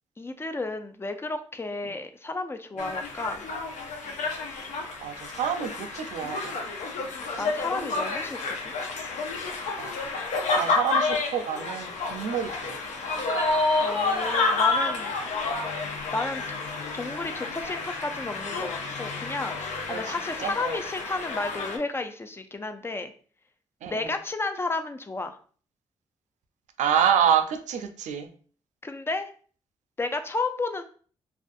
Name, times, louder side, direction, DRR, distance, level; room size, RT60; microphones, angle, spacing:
voice 1, 0.2-3.4 7.4-8.4 8.7-8.8 13.8-15.1 16.1-16.4 16.9-23.1 23.9-25.4 28.8-29.3 30.0-30.8, left 3 dB, 20° left, 7 dB, 0.4 m, -32 dB
sound 1, 2.8-21.8, left 3 dB, 75° left, 0.5 m, -30 dB
voice 2, 5.0-6.6 9.8-9.9 10.3-12.8 14.3-14.5 19.9-20.1 20.4-20.8 23.8-24.1 26.8-28.3, right 8 dB, 80° right, 7 dB, 0.4 m, -28 dB
2.4 x 2.3 x 2.5 m, 0.43 s
cardioid pair, 65°, 12 cm